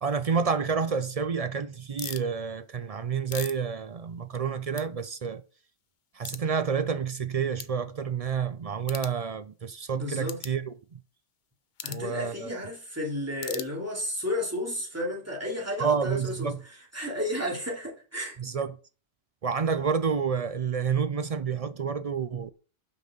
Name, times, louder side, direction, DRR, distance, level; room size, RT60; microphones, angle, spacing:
voice 1, 0.0-5.4 6.1-11.0 11.9-12.5 15.8-16.6 18.4-18.8 19.4-22.5, right 6 dB, 45° right, 0.5 m, -29 dB
sound 1, 1.9-2.3 3.0-4.4 4.7-4.9 5.3-5.4 6.2-6.4 7.0-7.1 7.6-7.7 8.8-9.2 10.3-10.5 11.7-12.1 13.4-14.1, left 8 dB, 55° left, 0.7 m, -39 dB
voice 2, 9.9-10.4 11.8-16.5 16.9-18.4, left 1 dB, 15° right, 2.8 m, -32 dB
5.9 x 5.5 x 6.5 m
omnidirectional pair, 1.1 m